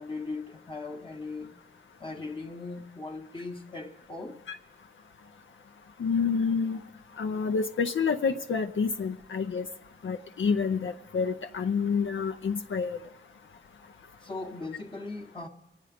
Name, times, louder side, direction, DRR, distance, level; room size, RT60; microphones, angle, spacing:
voice 1, 0.0-1.5 2.0-4.4 14.2-15.5, left 3 dB, 25° left, 1.0 m, -38 dB
voice 2, 6.0-6.8 7.2-9.6 10.0-13.0, left 5 dB, 70° left, 0.6 m, -28 dB
25.5 x 9.1 x 5.1 m
wide cardioid pair, 130°, 21 cm